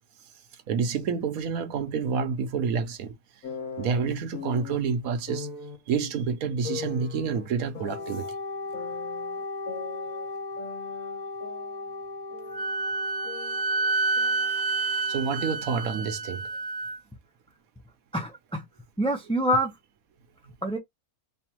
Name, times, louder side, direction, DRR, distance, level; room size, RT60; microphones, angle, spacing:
voice 1, 0.7-3.1 3.8-5.5 5.9-8.3 15.1-16.5, right 6 dB, 70° right, 1.2 m, -28 dB
sound 1, 3.4-4.8 5.3-5.8 6.6-8.3 8.7-10.3 10.6-12.7 13.0-14.5, left 6 dB, 55° left, 1.5 m, -40 dB
Wind instrument woodwind instrument, 7.8-15.5, left 3 dB, 30° left, 1.4 m, -37 dB
Wind instrument woodwind instrument 2, 12.5-17.0, right 3 dB, 50° right, 0.6 m, -29 dB
voice 2, 18.1-18.6 19.0-19.7 20.6-20.8, equal, 5° left, 0.5 m, -26 dB
3.4 x 2.4 x 4.5 m
omnidirectional pair, 1.6 m